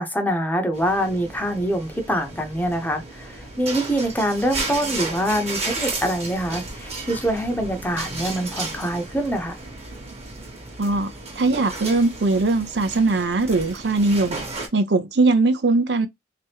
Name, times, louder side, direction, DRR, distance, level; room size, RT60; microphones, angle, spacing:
voice 1, 0.0-9.6, equal, 10° left, 0.8 m, -25 dB
sound 1, 0.7-14.7, right 3 dB, 35° right, 1.2 m, -33 dB
voice 2, 10.8-14.4 14.7-16.1, right 3 dB, 70° right, 0.6 m, -20 dB
3.4 x 2.9 x 3.4 m
head